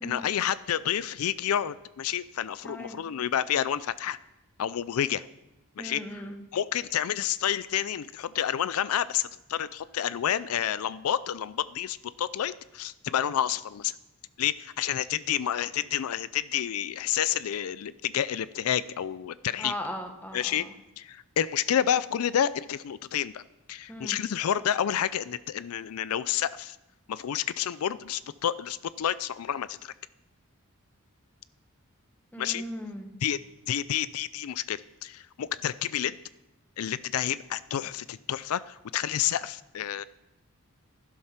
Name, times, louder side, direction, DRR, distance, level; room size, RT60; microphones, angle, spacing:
voice 1, 0.0-4.2 4.6-5.2 5.8-6.0 6.5-13.9 14.4-19.7 20.3-20.6 21.0-23.4 23.7-26.8 27.1-29.9 32.4-32.6 33.2-33.4 33.7-36.2 36.8-40.0, left 10 dB, 85° left, 17 dB, 0.4 m, -29 dB
voice 2, 2.6-3.0 5.8-6.4 19.6-20.7 23.9-24.2 32.3-33.1, equal, 10° left, 5 dB, 1.4 m, -38 dB
12.0 x 11.0 x 5.8 m, 0.94 s
head